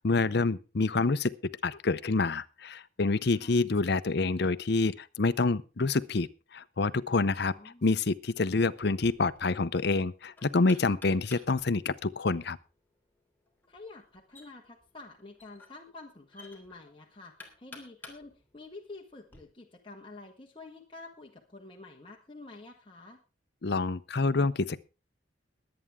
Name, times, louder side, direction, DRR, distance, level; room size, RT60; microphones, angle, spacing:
voice 1, 0.0-7.5 7.8-12.6 23.6-24.8, left 3 dB, 60° left, 15 dB, 0.7 m, -27 dB
voice 2, 7.5-7.8 13.7-23.2, left 3 dB, 25° left, -1 dB, 1.6 m, -49 dB
Knock, 8.8-19.4, left 2 dB, 10° left, 3.2 m, -54 dB
22.5 x 8.7 x 3.6 m, 0.31 s
head